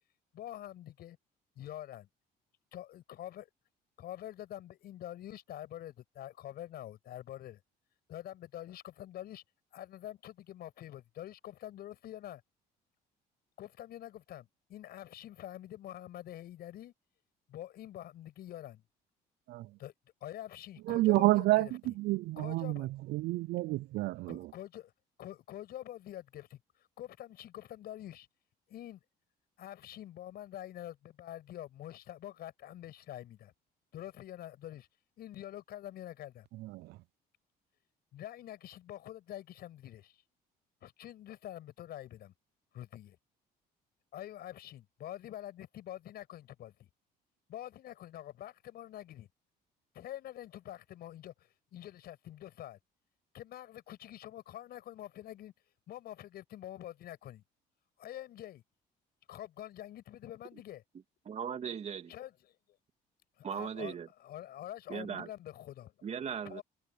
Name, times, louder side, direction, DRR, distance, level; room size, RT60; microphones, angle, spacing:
voice 1, 0.3-1.2 1.6-2.1 2.7-3.5 4.0-7.6 8.1-9.4 9.7-12.4 13.6-16.9 17.5-18.8 19.8-19.9 20.2-21.9 22.4-22.9 24.3-24.9 25.2-26.6 27.0-28.3 28.7-29.0 29.6-33.5 33.9-34.9 35.2-36.5 38.1-40.2 40.8-42.3 42.7-43.2 44.1-46.9 47.5-49.3 49.9-52.8 53.3-55.5 55.9-57.4 58.0-58.6 59.3-60.8 62.1-62.6 63.4-65.9 66.4-66.6, left 12 dB, 65° left, 7.2 m, -46 dB
voice 2, 20.9-21.7 22.0-24.5, right 19 dB, 75° right, 0.4 m, -29 dB
voice 3, 61.3-62.1 63.4-64.1 64.9-65.3 66.0-66.6, right 7 dB, 40° right, 2.7 m, -38 dB
cardioid pair, 110°, 17 cm